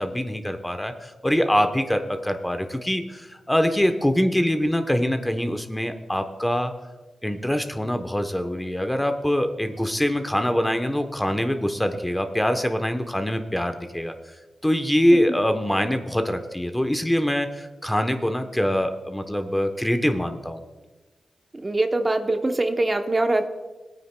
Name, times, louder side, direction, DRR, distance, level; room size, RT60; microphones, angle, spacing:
voice 1, 0.0-6.7 7.2-14.1 14.6-20.6, equal, 10° left, 7 dB, 0.9 m, -24 dB
voice 2, 21.6-23.5, right 2 dB, 30° right, 6 dB, 0.8 m, -23 dB
20.0 x 9.2 x 2.2 m, 1.2 s
cardioid pair, 65°, 0 cm